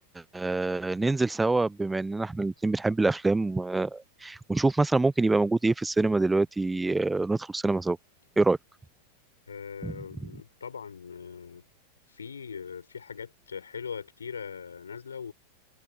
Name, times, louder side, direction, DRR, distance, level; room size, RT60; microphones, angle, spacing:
voice 1, 0.3-8.0 8.4-8.6 9.8-9.9, right 3 dB, 10° right, 0.6 m, -25 dB
voice 2, 9.5-11.6 12.1-15.3, left 6 dB, 70° left, 4.8 m, -40 dB
figure-of-eight pair, 90°, 0 cm